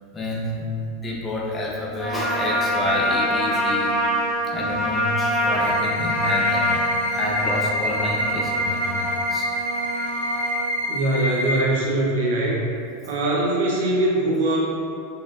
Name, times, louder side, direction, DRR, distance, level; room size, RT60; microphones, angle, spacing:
voice 1, 0.1-3.9 4.5-9.5, left 1 dB, 25° left, -4 dB, 0.6 m, -29 dB
Trumpet, 2.0-10.7, equal, 10° right, 1.1 m, -25 dB
sound 1, 5.6-11.6, left 1 dB, 90° left, 1.1 m, -27 dB
voice 2, 10.9-12.6 13.0-14.6, right 2 dB, 75° right, -3 dB, 0.7 m, -22 dB
4.1 x 2.5 x 2.4 m, 2.5 s
hypercardioid pair, 110°, 0 cm